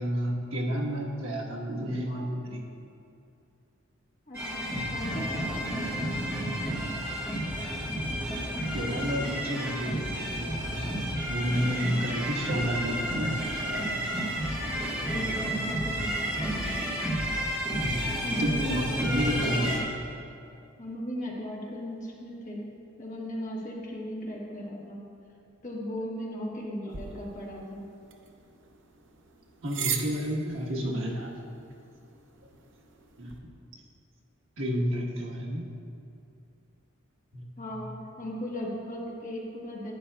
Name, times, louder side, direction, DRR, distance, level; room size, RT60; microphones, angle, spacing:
voice 1, 0.0-2.6 8.7-10.8 11.2-14.0 14.6-14.8 17.8-18.1 18.4-19.9 29.6-31.4 33.2-33.3 34.6-35.7 37.3-37.4 37.7-37.9, equal, 80° right, -3 dB, 1.3 m, -31 dB
voice 2, 4.3-5.9 11.4-12.1 15.0-16.3 18.2-19.8 20.8-22.6 23.0-25.1 25.6-27.9 37.6-39.9, equal, 40° left, -3 dB, 1.4 m, -37 dB
sound 1, 4.3-19.8, equal, 10° right, 1.4 m, -31 dB
sound 2, 26.9-33.4, right 7 dB, 60° right, 0.7 m, -40 dB
11.5 x 9.6 x 2.3 m, 2.6 s
head